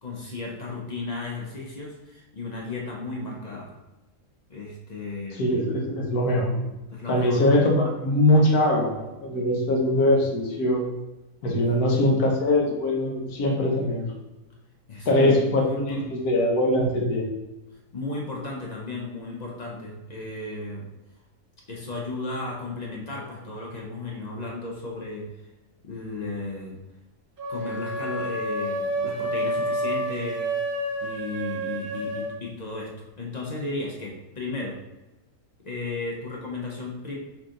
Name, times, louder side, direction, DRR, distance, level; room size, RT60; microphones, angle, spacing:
voice 1, 0.0-3.7 4.5-5.7 6.9-7.4 11.5-12.4 14.9-16.0 17.9-20.9 21.7-25.3 25.8-26.8 27.5-30.5 31.0-34.8 35.6-37.2, left 3 dB, 50° left, -2 dB, 0.5 m, -34 dB
voice 2, 5.3-6.6 7.1-10.8 11.4-14.1 15.1-17.3, left 1 dB, 70° left, 0 dB, 1.4 m, -22 dB
sound 1, 27.4-32.3, right 1 dB, 40° right, 0.9 m, -29 dB
4.7 x 2.9 x 3.7 m, 1.0 s
omnidirectional pair, 1.7 m